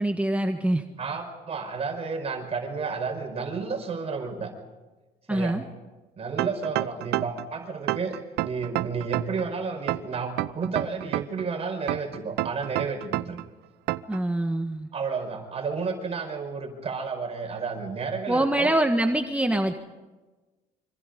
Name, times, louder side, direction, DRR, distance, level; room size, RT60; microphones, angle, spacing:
voice 1, 0.0-0.8 5.3-5.6 14.1-14.9 18.3-19.8, right 1 dB, 10° right, 5 dB, 1.5 m, -24 dB
voice 2, 1.0-4.5 5.3-5.6 6.2-13.4 14.9-18.8, right 5 dB, 35° right, 4 dB, 5.2 m, -31 dB
sound 1, 6.4-7.5 7.9-9.5 9.9-11.5 11.9-13.5 13.9-14.2, right 17 dB, 80° right, 0.7 m, -28 dB
26.0 x 25.5 x 5.4 m, 1.2 s
cardioid pair, 110°, 17 cm